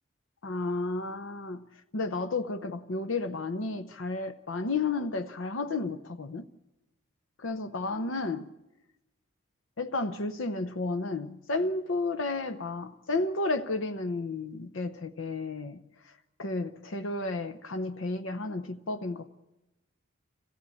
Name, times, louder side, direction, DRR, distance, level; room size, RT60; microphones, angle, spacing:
voice 1, 0.4-1.7 1.9-6.5 7.4-8.5 9.8-15.8 16.1-16.2 16.4-19.3, left 3 dB, 75° left, 0.8 m, -32 dB
26.0 x 16.0 x 8.5 m
head